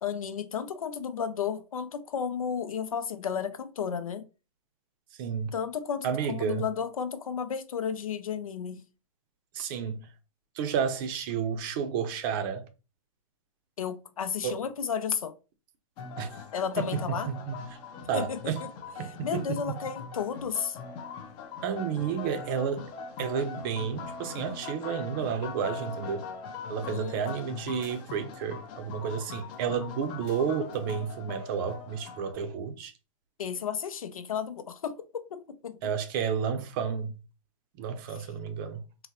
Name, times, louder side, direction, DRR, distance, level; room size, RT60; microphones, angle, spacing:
voice 1, 0.0-4.2 5.5-8.8 13.8-15.3 16.5-17.3 18.1-18.5 19.0-20.8 26.9-27.5 33.4-35.8 38.1-38.3, left 7 dB, 90° left, 0.5 m, -33 dB
voice 2, 5.2-5.5 6.0-6.6 9.5-10.0 10.6-12.7 14.4-14.6 16.2-16.3 16.8-17.0 17.3-17.6 18.1-18.6 19.0-19.6 21.6-22.9 23.2-26.2 26.7-32.9 35.8-37.1 37.8-38.8, right 7 dB, 40° right, 0.6 m, -31 dB
sound 1, 16.0-32.3, left 5 dB, 30° left, 0.5 m, -41 dB
3.8 x 2.0 x 2.8 m
hypercardioid pair, 130°, 17 cm